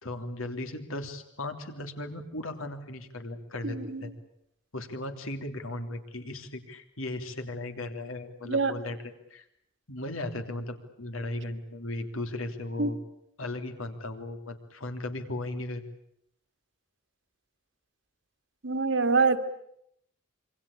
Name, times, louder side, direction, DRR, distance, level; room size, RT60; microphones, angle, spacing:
voice 1, 0.0-4.1 4.7-9.4 9.9-13.0 13.4-15.8, left 2 dB, 85° left, 6 dB, 3.2 m, -36 dB
voice 2, 3.6-4.1 8.5-8.7 12.8-12.9 18.6-19.4, right 4 dB, 65° right, 8 dB, 1.9 m, -25 dB
26.5 x 24.5 x 8.5 m, 0.73 s
head